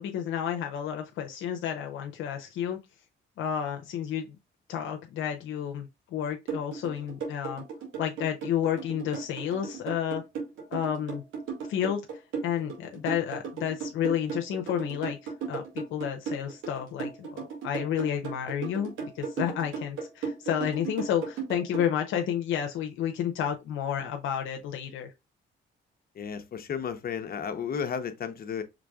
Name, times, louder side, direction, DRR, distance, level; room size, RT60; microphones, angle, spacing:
voice 1, 0.0-2.8 3.4-4.4 4.7-7.6 8.0-10.2 10.7-11.2 11.7-12.0 12.4-25.1, left 9 dB, 80° left, 0.7 m, -31 dB
sound 1, 6.5-21.9, right 5 dB, 85° right, 2.0 m, -35 dB
voice 2, 26.2-28.6, left 7 dB, 50° left, 0.8 m, -33 dB
5.0 x 3.4 x 2.3 m
cardioid pair, 90°, 20 cm